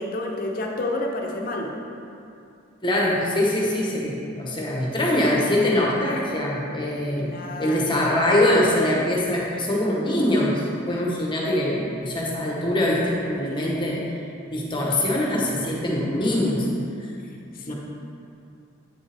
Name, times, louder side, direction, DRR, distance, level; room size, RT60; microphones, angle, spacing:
voice 1, 0.0-1.7 7.2-7.8 10.9-11.0 13.5-13.8 17.5-17.7, left 2 dB, 45° left, 1 dB, 0.7 m, -30 dB
voice 2, 2.8-14.0 14.5-16.7 17.0-17.1 17.7-17.8, left 1 dB, 25° left, -3 dB, 1.0 m, -23 dB
8.4 x 5.3 x 3.4 m, 2.6 s
head